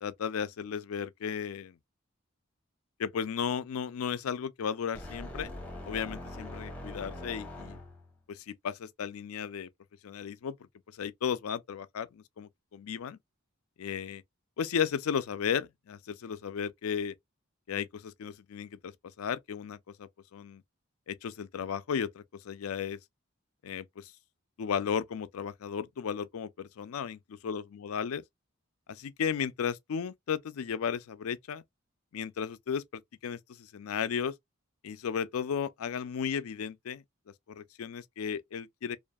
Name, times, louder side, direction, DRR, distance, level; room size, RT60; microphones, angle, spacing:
voice 1, 0.0-1.8 3.0-5.5 5.9-7.8 8.3-9.7 10.0-10.6 10.9-13.2 13.8-14.2 14.6-17.1 17.7-18.9 19.2-20.6 21.1-23.0 23.6-24.1 24.6-28.2 28.9-31.6 32.1-34.3 34.8-37.0 37.5-39.0, left 7 dB, 90° left, 0.4 m, -34 dB
sound 1, 4.9-8.2, left 1 dB, 5° left, 0.7 m, -42 dB
2.7 x 2.4 x 2.2 m
head